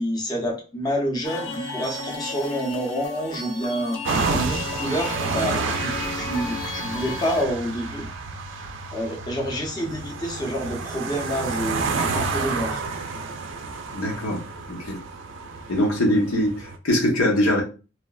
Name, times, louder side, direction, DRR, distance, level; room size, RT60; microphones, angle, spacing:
voice 1, 0.0-4.0 4.3-8.1 8.9-12.8, equal, 20° left, 0.5 m, -28 dB
sound 1, 1.2-7.4, left 3 dB, 65° left, 0.5 m, -33 dB
sound 2, 4.0-16.8, right 4 dB, 65° right, 0.3 m, -30 dB
voice 2, 13.9-14.4 14.7-15.0 15.7-17.6, left 1 dB, 90° left, 0.8 m, -22 dB
3.1 x 2.0 x 2.3 m
head